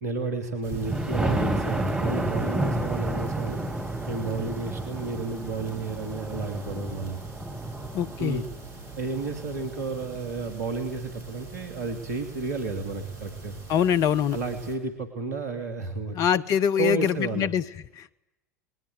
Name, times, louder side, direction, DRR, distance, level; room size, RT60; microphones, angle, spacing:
voice 1, 0.0-3.6 4.1-7.2 8.2-8.4 9.0-13.6 14.3-16.4 16.8-17.5, right 3 dB, 70° right, 7 dB, 2.9 m, -32 dB
sound 1, 0.6-14.8, right 4 dB, 50° right, 5.8 m, -44 dB
Thunder, 0.7-10.4 11.0-11.1 11.5-11.6 11.9-12.0, right 1 dB, 10° right, 5.2 m, -31 dB
voice 2, 7.9-8.4 13.7-14.4 16.1-17.6 18.0-18.1, left 9 dB, 40° left, 15 dB, 1.0 m, -24 dB
28.0 x 21.0 x 8.3 m, 0.92 s
figure-of-eight pair, 75°, 9 cm